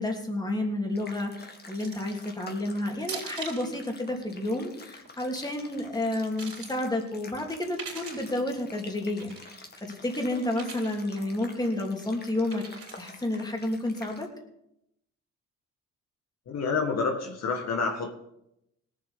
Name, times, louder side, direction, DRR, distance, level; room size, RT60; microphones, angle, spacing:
voice 1, 0.0-12.6 13.0-14.3, left 1 dB, 15° left, 1 dB, 3.0 m, -31 dB
sound 1, 1.0-14.3, left 3 dB, 35° left, 2.1 m, -49 dB
sound 2, 1.7-2.1 3.0-3.7 5.0-5.4 6.0-6.8 7.6-8.3 9.2-9.6 10.5-11.0 12.5-13.1, right 5 dB, 50° right, 3.6 m, -41 dB
voice 2, 16.5-18.1, left 4 dB, 60° left, 2 dB, 1.9 m, -28 dB
18.5 x 7.5 x 5.7 m, 0.81 s
cardioid pair, 90°, 30 cm